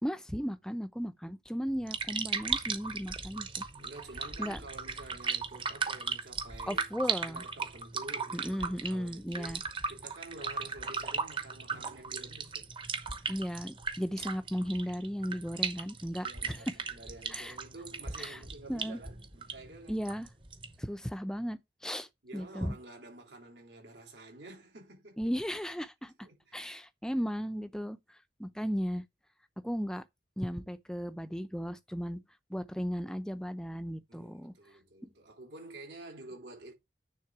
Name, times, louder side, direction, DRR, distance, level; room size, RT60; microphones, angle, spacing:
voice 1, 0.0-3.7 4.4-4.6 6.7-7.4 8.3-9.6 13.3-16.6 17.3-17.5 18.2-18.4 18.7-19.0 19.9-20.3 20.8-22.1 22.3-22.8 25.2-26.1 26.5-28.0 28.4-29.0 29.6-30.0 30.4-32.2 32.5-34.5, equal, 5° left, 0.5 m, -35 dB
sound 1, 1.7-20.8, right 5 dB, 30° right, 0.9 m, -37 dB
voice 2, 3.8-6.9 7.2-12.7 16.2-20.0 22.2-25.3 26.2-26.7 34.1-36.7, right 2 dB, 75° right, 3.4 m, -49 dB
9.6 x 3.7 x 4.8 m
head